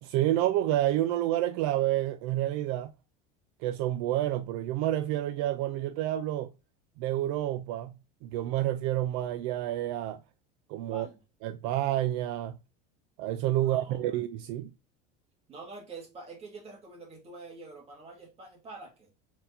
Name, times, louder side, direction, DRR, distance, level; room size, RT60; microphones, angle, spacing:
voice 1, 0.0-2.9 3.6-6.5 7.0-10.2 10.7-11.1 11.4-12.6 13.2-14.7, right 13 dB, 65° right, 0.4 m, -29 dB
voice 2, 13.6-14.2 15.5-19.1, right 3 dB, 30° right, 2.0 m, -46 dB
4.4 x 3.8 x 2.6 m
supercardioid pair, 140°, 21 cm